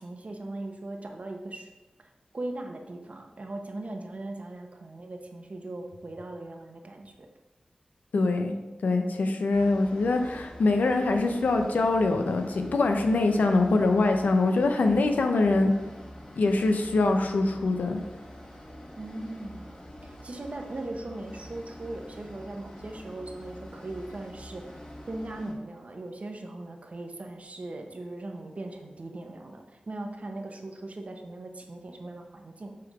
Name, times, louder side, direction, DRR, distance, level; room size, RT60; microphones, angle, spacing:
voice 1, 0.0-1.7 2.0-7.3 19.0-19.7 20.0-24.8 25.1-32.7, right 2 dB, 55° right, 3 dB, 1.0 m, -39 dB
voice 2, 8.1-8.5 8.8-15.7 16.4-18.0, left 3 dB, 85° left, 5 dB, 0.7 m, -24 dB
sound 1, 9.5-25.5, equal, 30° left, 2.0 m, -46 dB
7.7 x 3.6 x 4.8 m, 1.1 s
cardioid pair, 45°, 3 cm